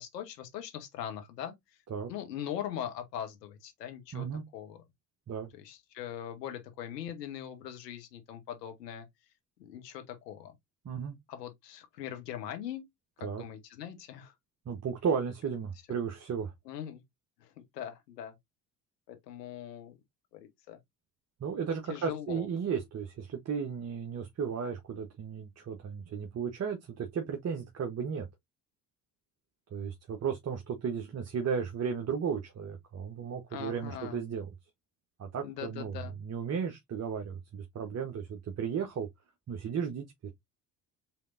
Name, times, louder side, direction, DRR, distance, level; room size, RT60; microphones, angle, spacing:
voice 1, 0.0-1.5 2.1-4.3 4.5-4.8 5.5-9.1 9.6-10.5 11.3-12.8 13.2-14.3 16.7-17.0 17.4-18.3 19.1-20.0 20.3-20.8 21.9-22.5 33.5-34.2 35.4-36.1, left 10 dB, 80° left, 1.1 m, -41 dB
voice 2, 4.1-4.4 5.3-5.5 10.8-11.2 13.2-13.4 14.7-16.5 21.4-28.3 29.7-34.5 35.2-39.1 39.5-40.0, right 6 dB, 30° right, 1.0 m, -34 dB
5.5 x 3.5 x 2.5 m
figure-of-eight pair, 55°, 48 cm